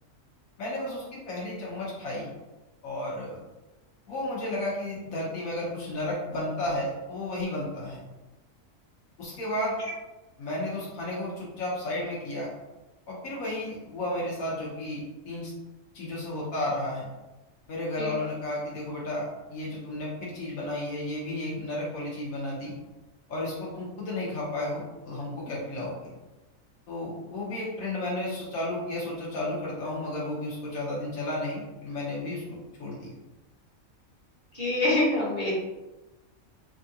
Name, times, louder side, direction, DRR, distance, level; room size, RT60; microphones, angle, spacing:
voice 1, 0.6-2.3 2.8-3.4 4.1-8.0 9.2-9.8 10.4-12.5 13.1-15.5 15.9-17.1 17.7-22.7 23.3-26.1 26.9-33.1, left 1 dB, 85° left, -5 dB, 1.2 m, -33 dB
voice 2, 34.5-35.5, left 2 dB, 35° left, -5 dB, 1.1 m, -25 dB
3.5 x 2.4 x 2.7 m, 1.1 s
omnidirectional pair, 1.4 m